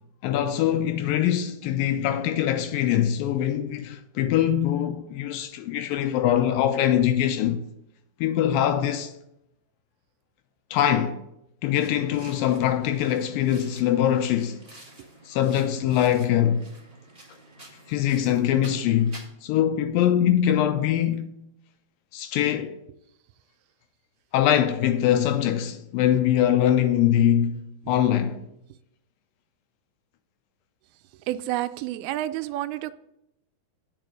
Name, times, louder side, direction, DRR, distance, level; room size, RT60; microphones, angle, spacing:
voice 1, 0.2-7.6 8.2-9.1 10.7-11.2 11.6-14.6 15.3-16.7 17.9-21.3 22.1-22.8 24.3-28.4, left 10 dB, 80° left, 2.1 m, -23 dB
sound 1, 11.8-19.3, right 1 dB, 40° right, 0.5 m, -49 dB
voice 2, 31.3-32.9, right 14 dB, 85° right, 2.4 m, -29 dB
8.9 x 5.2 x 7.8 m
omnidirectional pair, 4.4 m